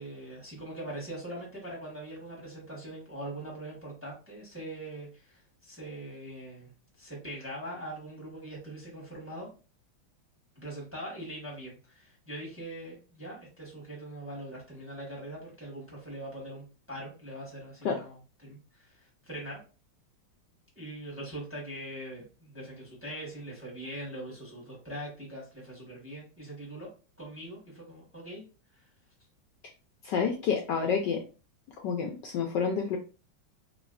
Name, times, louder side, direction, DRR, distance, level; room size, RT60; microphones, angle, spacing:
voice 1, 0.0-6.7 7.0-9.5 10.5-19.6 20.7-26.9 27.2-28.4 28.7-28.8, right 1 dB, 10° right, -3 dB, 1.1 m, -42 dB
voice 2, 30.0-31.2 31.8-33.0, left 6 dB, 70° left, 2 dB, 1.1 m, -29 dB
3.4 x 3.1 x 2.5 m, 0.34 s
omnidirectional pair, 2.2 m